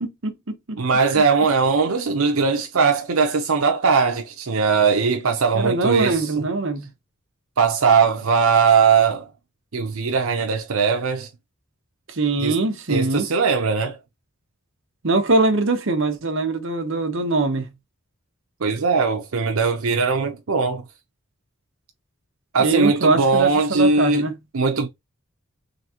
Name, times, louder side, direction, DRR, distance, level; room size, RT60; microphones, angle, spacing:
voice 1, 0.0-0.6 5.5-6.9 12.1-13.3 15.0-17.7 22.6-24.3, right 3 dB, 60° right, 1.0 m, -22 dB
voice 2, 0.8-6.5 7.6-9.3 9.7-11.3 12.4-12.6 12.9-14.0 18.6-20.8 22.5-24.2 24.5-24.9, right 5 dB, 85° right, 0.7 m, -20 dB
3.9 x 3.5 x 2.8 m
head